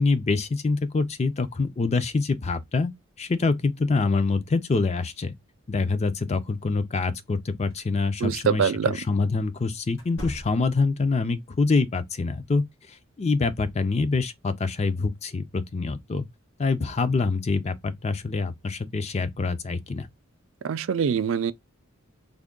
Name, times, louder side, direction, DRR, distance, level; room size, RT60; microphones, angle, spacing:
voice 1, 0.0-2.9 3.2-5.3 5.7-12.6 13.2-16.3 16.6-20.1, left 3 dB, 30° left, 0.4 m, -25 dB
sound 1, 7.7-7.9 9.9-10.9, equal, 60° left, 1.2 m, -39 dB
voice 2, 8.2-9.0 20.6-21.5, right 7 dB, 60° right, 0.3 m, -24 dB
3.5 x 2.2 x 3.6 m
head